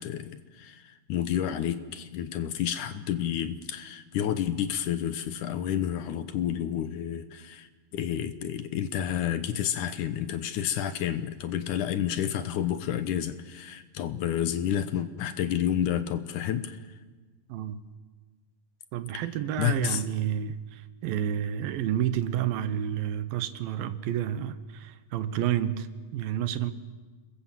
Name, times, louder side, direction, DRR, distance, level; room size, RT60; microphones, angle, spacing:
voice 1, 0.0-16.8 19.1-19.2 19.6-20.0, left 10 dB, 70° left, 2.2 m, -30 dB
voice 2, 17.5-17.8 18.9-26.7, right 10 dB, 80° right, 2.8 m, -30 dB
30.0 x 21.0 x 7.5 m
omnidirectional pair, 4.1 m